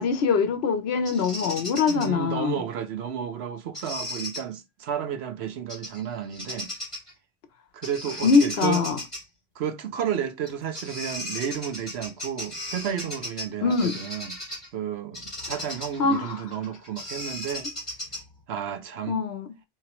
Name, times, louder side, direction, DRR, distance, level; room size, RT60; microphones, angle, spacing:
voice 1, 0.0-2.6 8.2-9.0 13.6-14.0 16.0-16.4 19.1-19.5, left 5 dB, 65° left, 0.9 m, -23 dB
Bird vocalization bird call bird song, 1.0-2.1 3.7-4.4 5.7-6.0 6.3-7.1 7.8-9.2 10.4-10.5 10.7-14.7 15.1-18.4, left 1 dB, 25° left, 2.1 m, -36 dB
voice 2, 1.9-6.7 7.7-8.8 9.6-14.4 14.7-17.7 18.5-19.2, right 8 dB, 70° right, 0.8 m, -32 dB
4.0 x 3.0 x 2.9 m
omnidirectional pair, 1.2 m